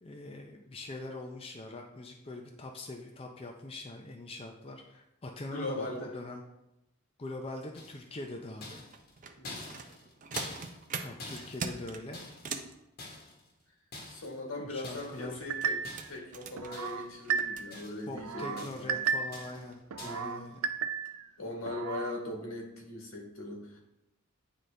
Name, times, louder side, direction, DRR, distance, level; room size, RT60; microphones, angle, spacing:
voice 1, 0.0-6.4 7.2-8.8 11.0-12.2 14.5-15.4 18.1-20.6, left 2 dB, 25° left, 2 dB, 0.5 m, -43 dB
voice 2, 5.4-6.2 9.4-9.7 14.1-19.0 20.0-20.4 21.4-23.8, left 2 dB, 80° left, 0 dB, 1.6 m, -40 dB
sound 1, 7.8-8.2 8.6-12.6 13.0-13.5 13.9-14.4 14.8-15.3 15.8-16.3 16.7-17.2 17.4-18.1 18.6-19.0 19.3-19.7 20.0-20.3, left 2 dB, 50° left, 1.2 m, -46 dB
sound 2, 8.9-12.7 15.2-17.6 18.4-18.5 18.9-19.1 19.6-19.8 20.2-20.3, right 5 dB, 40° right, 0.5 m, -42 dB
sound 3, 15.5-16.1 16.6-17.8 18.2-19.5 19.9-21.3 21.7-22.2, right 6 dB, 90° right, 0.4 m, -34 dB
9.2 x 3.9 x 3.3 m, 0.88 s
head